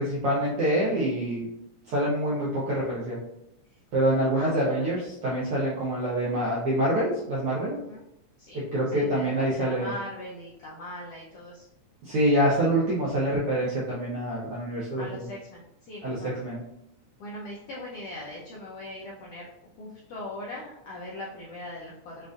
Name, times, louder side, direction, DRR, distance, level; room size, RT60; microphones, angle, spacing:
voice 1, 0.0-1.4 1.9-3.2 3.9-7.7 8.5-9.9 12.0-15.3 16.0-16.2 16.4-16.6, right 1 dB, 75° right, -6 dB, 1.3 m, -26 dB
voice 2, 4.3-4.9 7.7-8.0 8.4-8.6 8.9-11.7 14.9-16.4 17.2-19.5 19.8-22.3, left 1 dB, 80° left, -4 dB, 1.3 m, -40 dB
6.5 x 2.5 x 2.5 m, 0.82 s
omnidirectional pair, 3.5 m